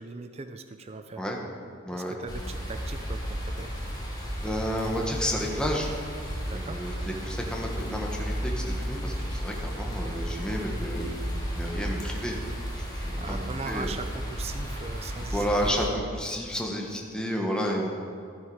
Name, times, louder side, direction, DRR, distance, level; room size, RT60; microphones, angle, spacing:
voice 1, 0.0-1.2 1.9-3.7 6.4-6.8 10.0-10.2 13.2-16.0, right 3 dB, 30° right, 8 dB, 0.5 m, -40 dB
sound 1, 2.3-15.9, equal, 20° left, 2.5 m, -33 dB
voice 2, 4.4-5.9 6.5-11.1 11.5-12.4 12.8-13.4 13.7-13.9 15.3-18.0, equal, 5° left, -1 dB, 1.3 m, -31 dB
13.0 x 9.4 x 4.9 m, 2.4 s
head